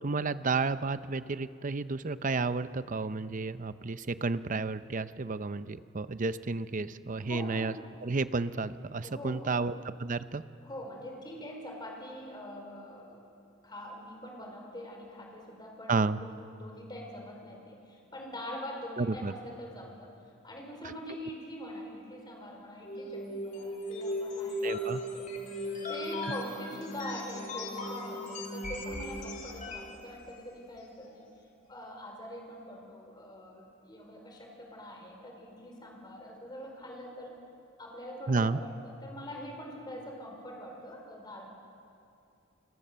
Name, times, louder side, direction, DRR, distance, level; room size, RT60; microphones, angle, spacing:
voice 1, 0.0-7.7 8.0-10.4 15.9-16.2 19.0-19.3 24.6-25.0 38.3-38.6, right 3 dB, 40° right, 13 dB, 0.7 m, -31 dB
voice 2, 7.3-7.6 9.0-9.8 10.6-13.2 13.6-20.1 20.4-25.3 25.9-31.2 31.7-37.3 37.8-41.5, equal, 20° left, 1 dB, 4.8 m, -44 dB
sound 1, 22.8-30.0, left 1 dB, 40° left, 3.4 m, -37 dB
28.5 x 21.5 x 6.9 m, 2.5 s
head